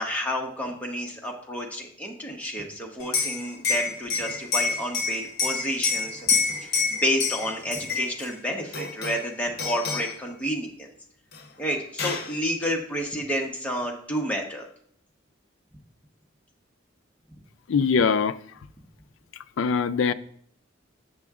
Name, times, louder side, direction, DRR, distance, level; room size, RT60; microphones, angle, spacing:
voice 1, 0.0-6.3 6.6-10.9 11.6-14.7, equal, 5° left, -1 dB, 0.9 m, -30 dB
Liquid, 3.0-8.3 8.7-9.3 9.6-10.2 11.3-11.4 11.7-12.3, left 4 dB, 50° left, 0.9 m, -27 dB
voice 2, 17.7-18.4 19.6-20.1, left 5 dB, 70° left, 11 dB, 0.4 m, -22 dB
7.7 x 6.1 x 3.6 m, 0.63 s
head